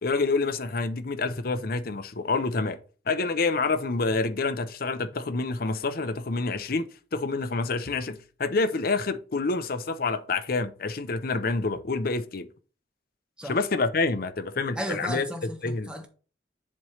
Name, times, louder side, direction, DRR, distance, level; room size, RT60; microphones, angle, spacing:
voice 1, 0.0-2.8 3.1-12.5 13.4-15.3 15.6-15.9, left 3 dB, 55° left, 0.7 m, -27 dB
voice 2, 14.8-16.1, equal, 5° right, 1.1 m, -34 dB
7.6 x 3.2 x 5.6 m
head